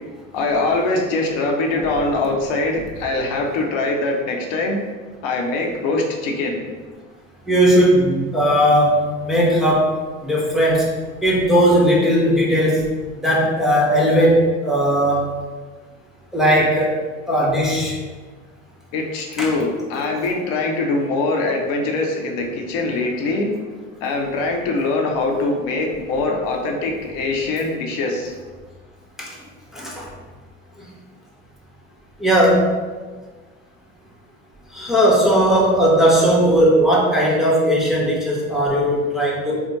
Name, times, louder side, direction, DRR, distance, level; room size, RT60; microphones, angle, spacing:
voice 1, 0.3-4.8 5.2-6.6 18.9-23.5 24.0-28.4, left 2 dB, 55° left, 1 dB, 0.8 m, -22 dB
voice 2, 7.5-10.8 11.2-12.8 13.2-15.3 16.3-17.0 17.3-18.0 19.4-19.5 29.2-29.3 29.7-30.1 32.2-32.7 34.7-39.6, equal, ahead, -5 dB, 0.9 m, -17 dB
4.2 x 2.1 x 4.0 m, 1.4 s
figure-of-eight pair, 70°, 39 cm